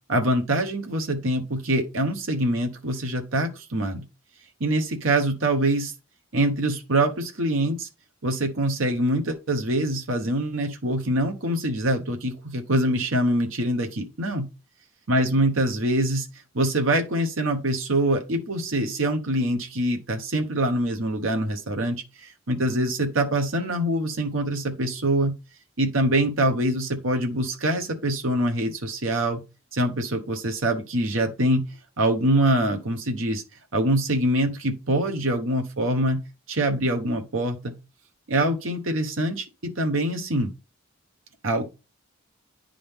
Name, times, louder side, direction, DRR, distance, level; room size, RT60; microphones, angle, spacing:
voice 1, 0.1-4.0 4.6-5.9 6.3-7.9 8.2-14.4 15.1-16.3 16.5-25.3 25.8-29.4 29.7-31.6 32.0-33.4 33.7-36.2 36.5-37.7 38.3-40.5 41.4-41.6, right 1 dB, 75° right, 1.1 m, -24 dB
10.0 x 3.8 x 3.5 m
head